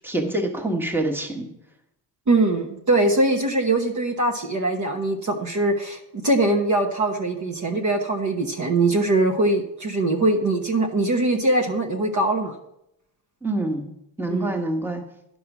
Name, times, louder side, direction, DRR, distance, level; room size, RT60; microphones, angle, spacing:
voice 1, 0.0-1.5 13.4-13.9 14.2-15.0, right 1 dB, 5° right, 2 dB, 1.3 m, -26 dB
voice 2, 2.3-12.5 14.3-14.5, right 2 dB, 35° right, 3 dB, 1.1 m, -22 dB
11.0 x 5.5 x 6.0 m, 0.81 s
cardioid pair, 120°, 48 cm